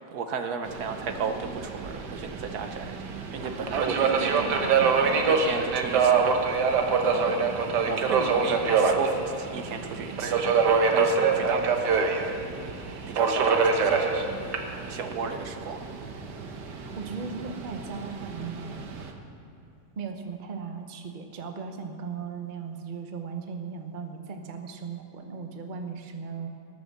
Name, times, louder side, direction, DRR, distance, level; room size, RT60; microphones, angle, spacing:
voice 1, 0.0-3.0 3.3-4.6 5.3-6.6 7.0-7.4 7.8-12.4 13.1-14.2 14.9-15.9, right 5 dB, 70° right, 7 dB, 1.3 m, -34 dB
Subway metro underground, 0.7-19.1, right 5 dB, 85° right, 1.6 m, -26 dB
voice 2, 3.4-5.2 16.7-18.8 20.0-26.5, right 5 dB, 35° right, 5 dB, 0.9 m, -37 dB
19.5 x 6.9 x 6.6 m, 2.7 s
omnidirectional pair, 1.8 m